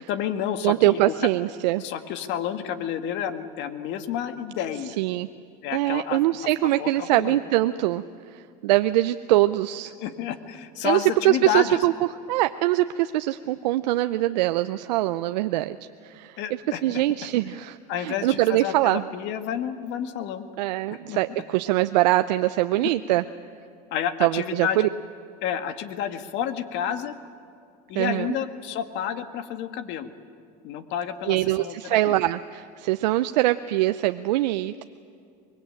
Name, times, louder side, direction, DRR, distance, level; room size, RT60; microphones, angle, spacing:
voice 1, 0.1-1.1 1.8-5.0 5.6-6.2 6.8-7.4 10.0-11.8 16.4-17.0 17.9-20.4 21.1-21.2 22.8-22.9 23.9-24.9 25.4-27.2 27.9-30.1 30.6-32.1, left 9 dB, 60° left, 9 dB, 1.9 m, -30 dB
voice 2, 0.6-1.8 5.0-5.3 5.7-8.0 8.3-9.9 10.8-11.9 12.3-15.8 16.0-16.4 16.8-19.0 20.6-23.2 24.2-24.9 27.9-28.4 31.3-34.8, right 16 dB, 85° right, 10 dB, 0.7 m, -23 dB
24.0 x 21.0 x 8.9 m, 2.4 s
supercardioid pair, 100°, 21 cm